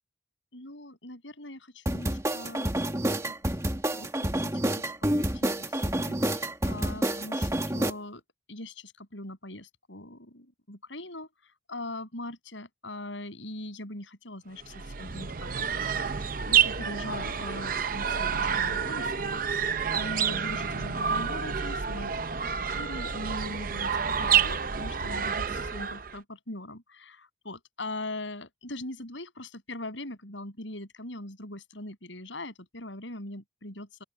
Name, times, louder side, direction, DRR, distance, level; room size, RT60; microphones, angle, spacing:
voice 1, 0.5-2.9 3.2-3.3 3.9-4.8 5.2-8.2 8.5-22.1 22.7-34.0, left 1 dB, 80° left, 7.3 m, -41 dB
sound 1, 1.9-7.9, right 1 dB, 15° right, 1.8 m, -28 dB
sound 2, 14.6-26.2, right 7 dB, 45° right, 0.7 m, -29 dB
open air
head